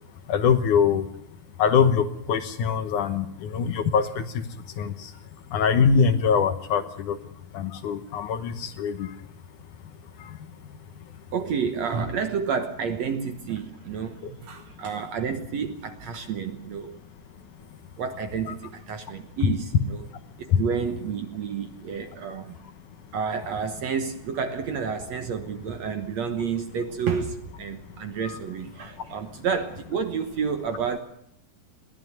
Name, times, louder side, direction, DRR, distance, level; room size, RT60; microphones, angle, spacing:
voice 1, 0.3-1.1 1.6-4.4 4.8-5.1 5.5-7.2 7.5-9.1 10.3-10.4 18.5-18.6 20.5-20.6 28.2-28.4, left 6 dB, 65° left, 9 dB, 2.3 m, -23 dB
voice 2, 11.3-17.0 18.0-20.1 20.4-22.6 23.1-31.0, right 6 dB, 60° right, 7 dB, 2.0 m, -30 dB
21.0 x 15.0 x 9.4 m, 0.73 s
omnidirectional pair, 4.2 m